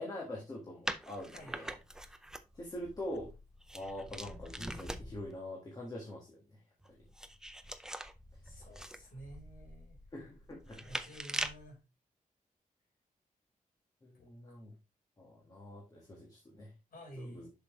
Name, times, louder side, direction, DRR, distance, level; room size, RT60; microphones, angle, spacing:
voice 1, 0.0-1.7 2.5-3.3 3.7-6.4 6.9-7.0 8.5-8.6 10.1-11.0 14.0-14.7 15.2-16.7 17.2-17.5, left 1 dB, 25° left, -2 dB, 1.6 m, -44 dB
sound 1, 0.9-5.3 6.8-11.7, right 1 dB, 5° right, 0.4 m, -43 dB
voice 2, 8.4-10.0 10.8-11.8 14.1-14.3 16.9-17.5, equal, 90° left, 1 dB, 4.1 m, -51 dB
7.2 x 6.1 x 3.1 m, 0.27 s
wide cardioid pair, 175°, 14 cm